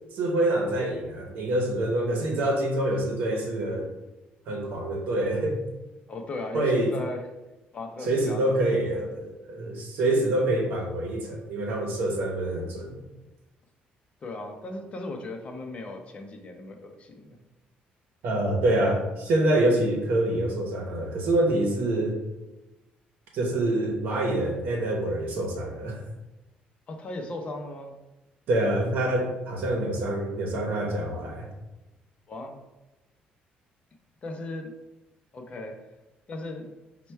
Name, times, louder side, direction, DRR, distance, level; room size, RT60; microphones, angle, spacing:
voice 1, 0.1-3.9 4.5-5.6 6.5-6.9 8.0-13.0 18.2-22.2 23.3-26.0 28.5-31.5, right 1 dB, 75° right, 0 dB, 0.8 m, -26 dB
voice 2, 6.1-7.3 7.7-8.8 14.2-17.4 26.9-27.9 32.3-32.6 34.2-34.7 35.3-35.9 36.3-36.7, left 2 dB, 35° left, 4 dB, 0.5 m, -37 dB
4.3 x 2.2 x 4.3 m, 1.0 s
cardioid pair, 130°, 3 cm